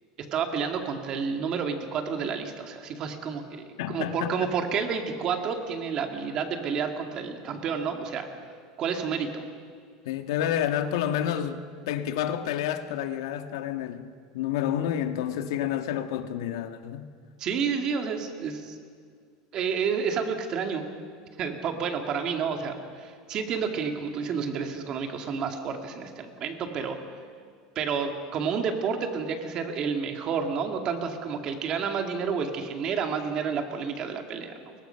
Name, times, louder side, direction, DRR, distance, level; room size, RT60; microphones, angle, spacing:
voice 1, 0.3-8.3 8.8-9.4 17.4-18.8 19.5-20.8 21.4-27.0 27.8-34.5, right 6 dB, 30° right, 2.2 m, -30 dB
voice 2, 3.8-4.5 10.1-17.1, left 10 dB, 90° left, 1.7 m, -29 dB
29.5 x 23.0 x 5.8 m
cardioid pair, 180°, 2 cm